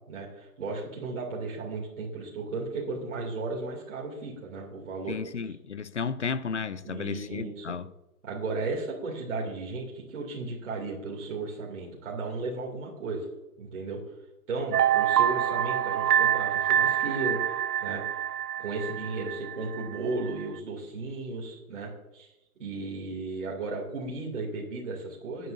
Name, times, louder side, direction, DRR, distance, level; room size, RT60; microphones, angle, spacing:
voice 1, 0.1-5.2 5.4-5.5 6.8-7.6 8.2-13.3 13.6-14.0 14.5-17.5 17.8-18.0 18.6-22.3 22.6-25.5, right 3 dB, 50° right, 2.7 m, -35 dB
voice 2, 5.1-7.9, left 6 dB, 50° left, 0.4 m, -33 dB
sound 1, 14.7-20.0 20.3-20.4, right 10 dB, 80° right, 0.7 m, -26 dB
18.5 x 9.2 x 2.6 m
hypercardioid pair, 180°, 46 cm